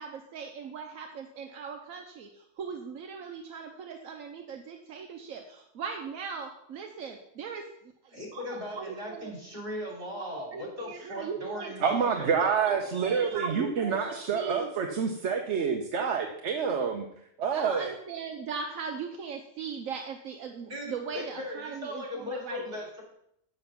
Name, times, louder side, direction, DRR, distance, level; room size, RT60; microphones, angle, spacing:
voice 1, 0.0-7.7 8.0-9.3 10.2-11.7 12.4-14.7 17.5-22.8, right 6 dB, 80° right, 3 dB, 1.2 m, -39 dB
voice 2, 8.1-12.8 20.7-23.0, left 1 dB, 45° right, -3 dB, 3.6 m, -38 dB
voice 3, 11.8-17.0 17.4-17.9, right 6 dB, 60° right, 3 dB, 1.1 m, -28 dB
7.9 x 7.3 x 5.8 m, 0.73 s
omnidirectional pair, 1.4 m